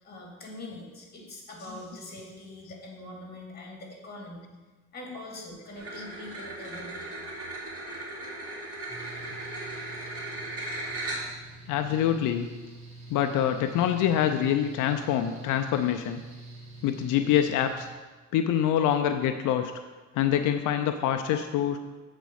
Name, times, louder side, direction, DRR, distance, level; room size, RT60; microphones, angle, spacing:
voice 1, 0.0-4.5 4.9-7.1, left 1 dB, 30° left, -1 dB, 2.7 m, -43 dB
sound 1, 5.8-11.5, right 2 dB, 50° right, 2.5 m, -37 dB
Mechanical fan, 8.9-17.9, right 2 dB, 20° right, 2.1 m, -46 dB
voice 2, 11.7-12.5 13.1-16.2 16.8-17.9 18.3-19.7 20.1-21.8, left 10 dB, 90° left, 7 dB, 0.5 m, -25 dB
7.9 x 4.2 x 6.3 m, 1.3 s
cardioid pair, 90°, 30 cm